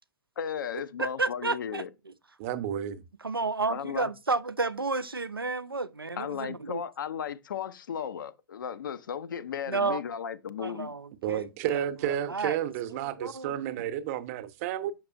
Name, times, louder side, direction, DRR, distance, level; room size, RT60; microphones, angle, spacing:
voice 1, 0.4-1.9 3.7-4.1 6.2-10.9, left 8 dB, 65° left, 0.6 m, -35 dB
voice 2, 1.0-1.8 3.2-6.8 9.7-10.0 10.6-11.8 12.3-12.6 13.2-13.8, right 3 dB, 90° right, 0.4 m, -31 dB
voice 3, 2.4-3.0 11.2-14.9, right 11 dB, 40° right, 0.7 m, -31 dB
6.6 x 5.9 x 2.4 m
figure-of-eight pair, 105°, 12 cm